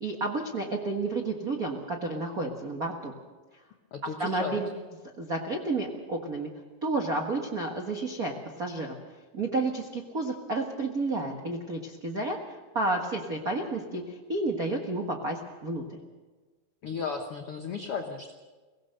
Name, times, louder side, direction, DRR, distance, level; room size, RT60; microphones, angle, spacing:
voice 1, 0.0-3.1 4.2-4.7 5.2-6.5 6.8-8.9 9.3-16.0, right 2 dB, 75° right, 2 dB, 0.8 m, -31 dB
voice 2, 3.9-4.6 16.8-18.3, left 5 dB, 80° left, 4 dB, 1.2 m, -34 dB
24.0 x 17.5 x 6.7 m, 1.3 s
omnidirectional pair, 4.4 m